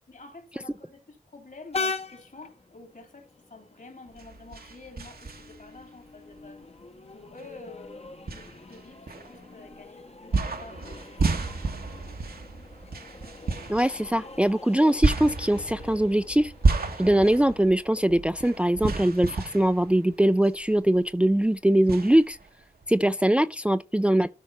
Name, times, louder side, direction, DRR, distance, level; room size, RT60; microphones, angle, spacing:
voice 1, 0.1-6.6 7.1-11.3, left 3 dB, 65° left, 3.6 m, -48 dB
Train, 1.7-19.0, left 4 dB, 45° left, 1.0 m, -42 dB
sound 1, 4.1-5.8 6.3-6.4 7.4-7.5 8.3-9.7 10.3-20.7 21.0-21.1 21.9-23.0, right 3 dB, 80° right, 1.3 m, -31 dB
voice 2, 13.7-16.5 17.0-22.4 22.9-24.3, right 1 dB, 5° right, 0.4 m, -22 dB
12.5 x 4.7 x 4.2 m
cardioid pair, 45°, 15 cm